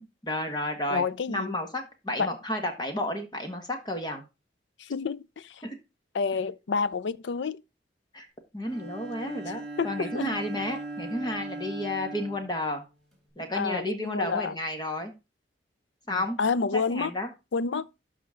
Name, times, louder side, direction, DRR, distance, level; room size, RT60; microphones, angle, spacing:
voice 1, 0.0-4.2 5.6-5.7 8.1-8.3 8.5-12.8 13.4-15.1 16.1-16.4 16.7-17.3, left 1 dB, 25° left, 1.6 m, -32 dB
voice 2, 0.9-1.5 2.2-2.3 4.8-5.6 6.1-7.6 9.8-10.4 13.5-14.5 16.1-17.1 17.5-17.9, left 5 dB, 80° left, 0.5 m, -29 dB
Bowed string instrument, 8.6-13.3, right 2 dB, ahead, 4.0 m, -39 dB
12.5 x 5.1 x 3.8 m
head